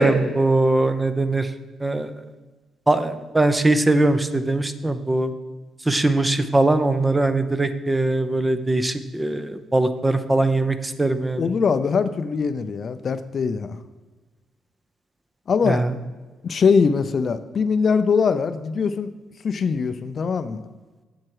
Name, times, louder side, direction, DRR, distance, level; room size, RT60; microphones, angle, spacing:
voice 1, 0.0-1.5 1.8-2.1 2.9-5.3 5.9-11.4 15.7-15.9, right 2 dB, 15° right, 10 dB, 0.7 m, -21 dB
voice 2, 11.4-13.8 15.5-15.8 16.4-19.1 19.4-20.6, left 5 dB, 50° left, 11 dB, 0.5 m, -22 dB
7.6 x 7.3 x 4.8 m, 1.3 s
cardioid pair, 90°, 0 cm